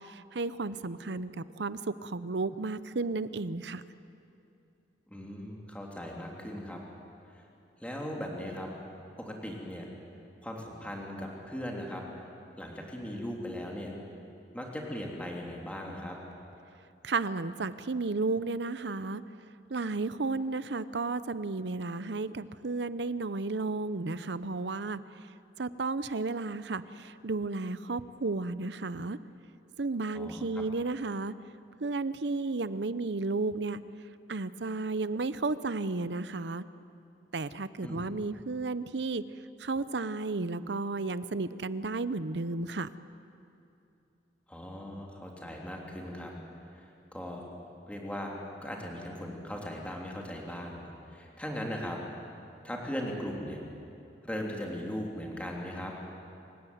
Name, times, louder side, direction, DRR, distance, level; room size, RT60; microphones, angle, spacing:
voice 1, 0.0-3.8 17.0-19.2 19.7-25.0 25.6-29.2 29.8-31.3 31.8-33.8 34.3-36.6 37.3-39.2 39.6-42.9, right 3 dB, 70° right, 15 dB, 0.7 m, -33 dB
voice 2, 5.1-6.8 7.3-7.4 7.8-8.7 9.2-9.9 10.4-12.0 12.6-13.9 14.5-16.1 30.1-30.5 37.8-38.1 44.5-46.3 46.7-47.4 47.9-48.3 48.6-52.0 52.6-53.6 54.2-55.9, equal, 5° left, -1 dB, 3.2 m, -38 dB
27.0 x 16.0 x 9.3 m, 2.7 s
head